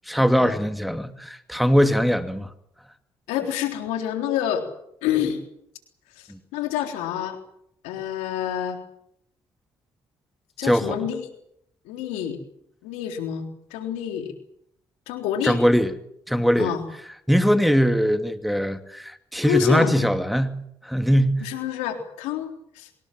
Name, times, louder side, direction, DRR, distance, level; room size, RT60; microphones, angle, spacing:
voice 1, 0.1-2.5 6.3-6.4 10.6-11.0 15.4-15.9 16.3-16.7 17.3-21.5, equal, ahead, 2.6 m, -21 dB
voice 2, 3.3-4.6 5.0-5.4 6.2-7.4 7.8-8.8 10.6-11.2 11.9-12.4 12.8-14.3 15.1-15.6 16.6-16.8 19.5-20.1 21.4-22.9, left 10 dB, 90° left, 3.7 m, -27 dB
24.5 x 21.0 x 7.8 m
supercardioid pair, 55°, 11 cm